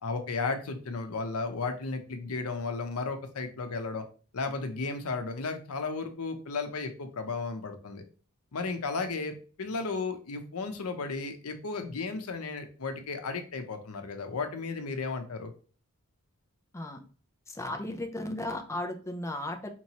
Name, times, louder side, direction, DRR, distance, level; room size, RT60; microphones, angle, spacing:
voice 1, 0.0-4.0 4.3-8.0 8.5-15.5, left 4 dB, 90° left, 7 dB, 0.7 m, -34 dB
voice 2, 17.5-19.7, left 1 dB, 15° left, 4 dB, 0.5 m, -35 dB
4.4 x 2.9 x 2.8 m, 0.38 s
head